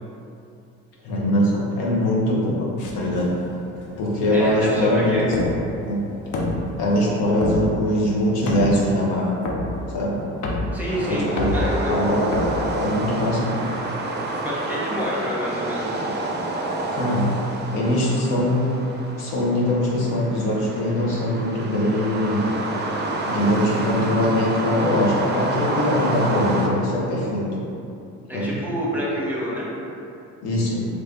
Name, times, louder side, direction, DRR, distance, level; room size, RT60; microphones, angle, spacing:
voice 1, 1.0-2.7 2.9-3.3 4.0-5.1 5.9-6.0 6.8-9.4 9.9-10.2 11.1-11.5 11.9-12.4 12.8-13.4 16.9-17.3 17.7-18.7 19.2-22.4 23.2-27.4 28.3-28.6 30.4-30.9, left 1 dB, 75° left, -4 dB, 0.9 m, -22 dB
sound 1, 2.8-13.5, left 2 dB, 55° left, 0.6 m, -30 dB
voice 2, 4.3-5.2 10.7-11.9 14.4-16.1 28.3-29.7, equal, 5° right, -6 dB, 1.0 m, -28 dB
sound 2, 10.9-26.7, right 2 dB, 30° right, 0.5 m, -28 dB
3.3 x 3.1 x 2.6 m, 2.7 s
hypercardioid pair, 60°, 38 cm